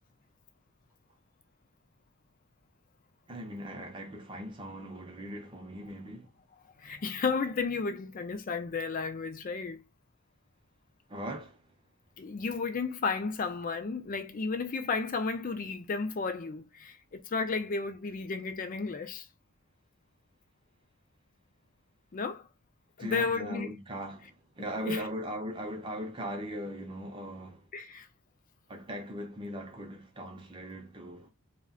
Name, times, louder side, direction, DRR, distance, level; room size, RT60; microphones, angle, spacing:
voice 1, 3.3-6.3 11.1-11.6 23.0-24.3 24.6-27.6 28.7-31.3, equal, 20° right, 0.6 m, -39 dB
voice 2, 6.8-9.8 12.2-19.3 22.1-22.5 23.0-23.7 24.8-25.0 27.7-28.1, left 4 dB, 40° left, 0.4 m, -33 dB
2.4 x 2.2 x 3.5 m
head